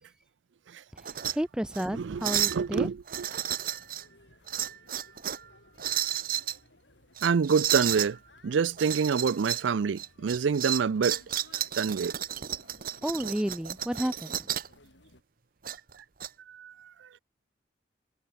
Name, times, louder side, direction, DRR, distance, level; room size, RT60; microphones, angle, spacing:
sound 1, 1.0-1.3 1.7-1.9 2.2-2.6 3.1-4.0 4.5-5.4 5.8-6.6 7.2-8.1 8.8-9.7 10.0-14.7 15.6-16.3, right 11 dB, 50° right, 0.9 m, -32 dB
voice 1, 1.3-2.9 13.0-14.4, equal, 5° right, 0.3 m, -31 dB
voice 2, 1.9-3.3 7.2-8.2 8.4-11.2 11.8-12.1 16.5-16.7, right 6 dB, 85° right, 0.4 m, -27 dB
sound 2, 3.2-15.2, left 2 dB, 80° left, 4.5 m, -59 dB
head